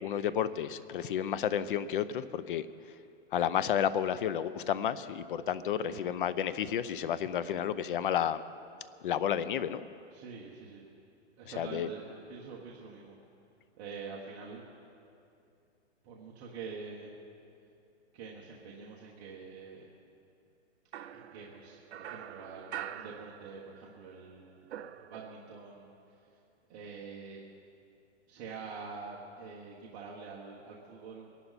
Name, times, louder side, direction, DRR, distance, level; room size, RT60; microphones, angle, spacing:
voice 1, 0.0-2.7 3.3-8.4 9.0-9.8 11.5-11.9, left 9 dB, 50° left, 14 dB, 0.6 m, -31 dB
voice 2, 10.1-10.8 11.4-13.2 13.8-14.6 16.0-17.1 18.1-19.9 21.1-26.4 26.7-27.4 28.3-31.3, right 5 dB, 30° right, -4 dB, 1.3 m, -46 dB
sound 1, 20.9-23.9 24.2-25.7, right 10 dB, 70° right, 0.7 m, -45 dB
22.0 x 11.5 x 4.1 m, 2.6 s
hypercardioid pair, 165°, 35 cm